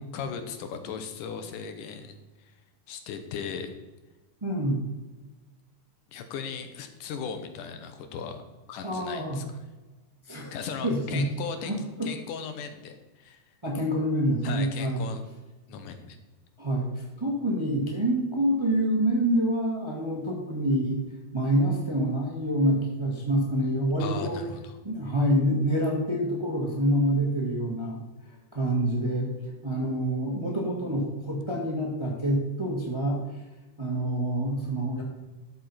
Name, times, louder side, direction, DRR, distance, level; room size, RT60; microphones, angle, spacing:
voice 1, 0.1-2.2 2.5-2.6 2.9-3.7 6.1-8.4 8.7-9.4 10.5-11.7 12.0-13.4 14.4-15.2 15.7-16.2 24.0-24.8, left 6 dB, 80° left, 8 dB, 2.6 m, -37 dB
voice 2, 4.4-4.8 8.8-9.4 10.2-10.5 10.8-11.2 11.6-12.1 13.6-15.0 16.6-21.0 21.3-24.4 24.8-28.0 28.5-29.3 29.6-33.2 33.8-35.0, right 1 dB, 15° right, -1 dB, 1.3 m, -26 dB
12.0 x 7.4 x 4.3 m, 1.2 s
omnidirectional pair, 3.7 m